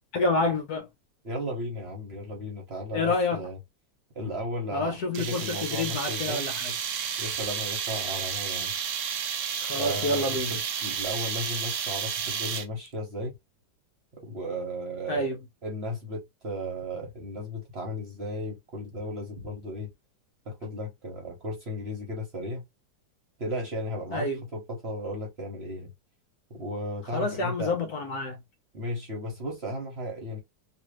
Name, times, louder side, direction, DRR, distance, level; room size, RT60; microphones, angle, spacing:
voice 1, 0.1-0.9 2.9-3.5 4.7-6.7 9.6-10.6 15.1-15.4 24.1-24.4 27.1-28.4, left 2 dB, 60° left, 1.3 m, -28 dB
voice 2, 1.2-3.6 4.1-6.4 7.2-8.7 9.7-13.3 14.2-15.3 15.6-19.9 20.5-22.6 23.4-25.9 26.5-27.8 28.7-30.4, equal, 40° right, 1.2 m, -35 dB
sound 1, 5.1-12.9, right 7 dB, 70° right, 0.7 m, -31 dB
3.3 x 2.9 x 3.0 m
omnidirectional pair, 2.0 m